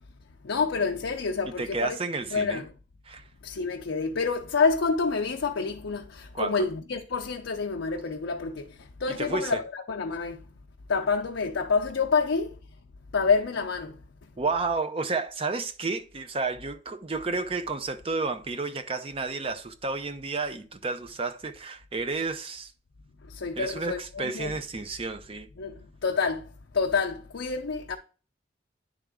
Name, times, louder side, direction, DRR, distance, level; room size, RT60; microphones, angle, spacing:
voice 1, 0.4-2.0 2.3-2.7 3.4-10.5 10.9-12.6 13.1-14.0 23.3-24.5 25.6-26.5 26.7-28.0, left 4 dB, 90° left, 0.6 m, -28 dB
voice 2, 1.5-2.6 3.1-3.2 6.3-6.5 9.2-9.6 14.4-22.7 23.6-25.5, right 3 dB, 30° right, 0.6 m, -31 dB
10.0 x 3.5 x 3.6 m
head